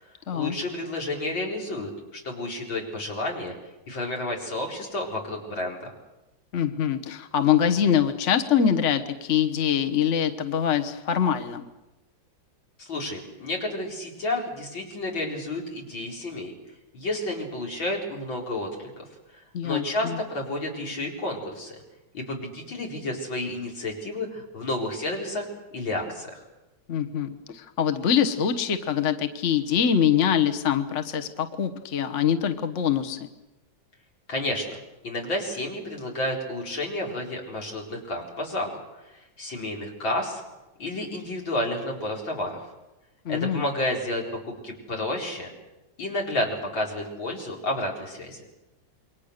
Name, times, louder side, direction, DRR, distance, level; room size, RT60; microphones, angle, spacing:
voice 1, 0.3-3.5 3.9-5.9 12.8-16.5 16.9-19.0 19.6-21.8 22.1-25.5 25.7-26.4 34.3-34.8 35.0-38.8 39.1-40.4 40.8-42.6 43.3-44.2 44.6-45.5 46.0-48.4, left 1 dB, 90° left, 0 dB, 5.2 m, -31 dB
voice 2, 6.5-11.7 19.5-20.2 26.9-33.2 43.2-43.6, left 8 dB, 40° left, 7 dB, 1.5 m, -24 dB
28.0 x 22.5 x 6.7 m, 1.0 s
omnidirectional pair, 2.0 m